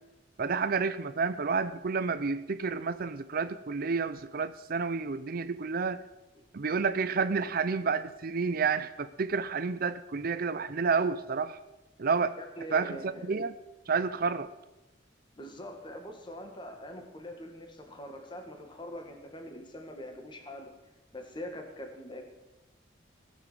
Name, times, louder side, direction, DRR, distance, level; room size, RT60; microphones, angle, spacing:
voice 1, 0.4-6.0 6.5-11.6 12.0-12.4 12.7-13.5 13.9-14.5, right 5 dB, 55° right, 13 dB, 0.5 m, -30 dB
voice 2, 12.4-13.3 15.4-20.8 21.1-22.3, equal, 25° left, 4 dB, 1.8 m, -43 dB
18.5 x 7.3 x 7.5 m, 1.0 s
head